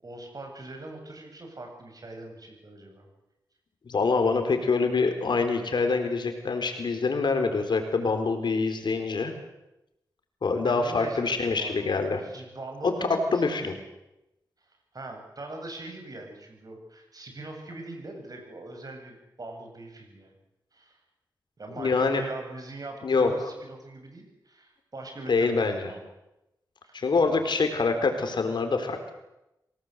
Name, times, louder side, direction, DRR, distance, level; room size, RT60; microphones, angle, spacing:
voice 1, 0.0-3.1 5.7-5.8 10.6-11.8 12.2-13.5 14.9-20.4 20.7-21.0 21.6-26.0 26.8-27.0 27.2-27.4, right 2 dB, 55° right, 3 dB, 7.7 m, -42 dB
voice 2, 3.8-9.3 10.4-12.2 12.8-13.7 21.8-22.2 23.0-23.3 25.3-25.9 26.9-29.0, left 4 dB, 80° left, 6 dB, 4.0 m, -25 dB
25.5 x 18.5 x 8.2 m, 0.91 s
cardioid pair, 60°, 8 cm